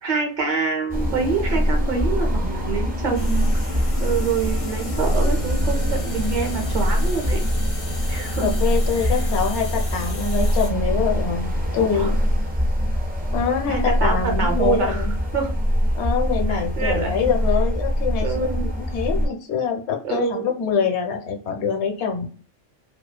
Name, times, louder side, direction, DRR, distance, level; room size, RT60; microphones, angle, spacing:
voice 1, 0.0-7.4 8.1-8.5 9.0-9.2 11.8-12.1 13.7-15.1 15.3-15.5 16.5-17.2 18.2-18.7 20.0-20.5, right 5 dB, 45° right, 2 dB, 0.7 m, -26 dB
sound 1, 0.9-19.3, equal, 10° right, 0.4 m, -23 dB
sound 2, 3.1-10.7, left 2 dB, 40° left, 0.5 m, -36 dB
Bass guitar, 5.0-11.2, right 7 dB, 75° right, 1.0 m, -41 dB
voice 2, 8.1-12.1 13.3-15.1 15.9-22.3, left 6 dB, 70° left, 4 dB, 0.9 m, -25 dB
2.7 x 2.0 x 2.3 m, 0.42 s
omnidirectional pair, 1.3 m